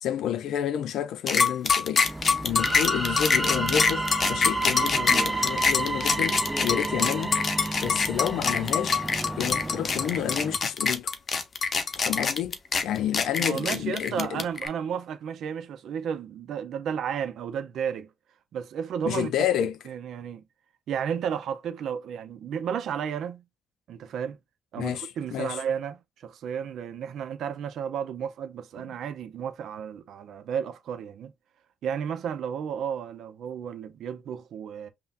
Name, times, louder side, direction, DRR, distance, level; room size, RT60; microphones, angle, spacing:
voice 1, 0.0-2.1 2.4-7.4 7.8-9.0 9.4-11.1 12.0-14.4 19.0-19.8 24.8-25.6, left 10 dB, 80° left, 0.4 m, -30 dB
sound 1, 1.3-14.7, left 5 dB, 45° left, 0.7 m, -25 dB
sound 2, 2.0-10.6, right 2 dB, 15° right, 0.5 m, -36 dB
sound 3, 2.5-9.2, right 2 dB, ahead, 1.7 m, -31 dB
voice 2, 13.5-18.1 18.5-19.3 19.9-20.4 20.9-23.4 23.9-24.4 24.7-31.3 31.8-34.9, right 8 dB, 75° right, 0.5 m, -33 dB
5.5 x 2.2 x 2.4 m
cardioid pair, 90°, 0 cm